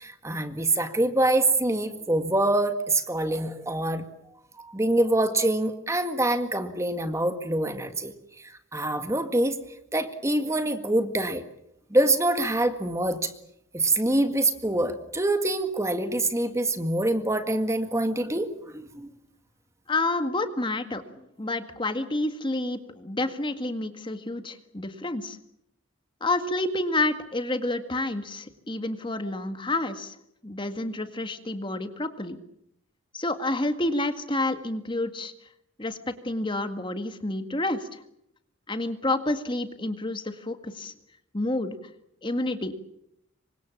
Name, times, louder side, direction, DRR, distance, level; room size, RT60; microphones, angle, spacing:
voice 1, 0.0-4.0 4.6-8.1 8.4-9.6 9.9-11.4 11.9-13.3 13.7-19.1, right 2 dB, 15° right, 8 dB, 1.8 m, -25 dB
voice 2, 19.9-21.0 21.4-25.4 26.2-30.2 30.4-32.4 33.1-35.3 35.8-38.0 38.7-40.9 41.3-41.8 42.2-42.7, left 2 dB, 25° left, 8 dB, 1.9 m, -29 dB
27.5 x 25.0 x 7.3 m, 0.76 s
head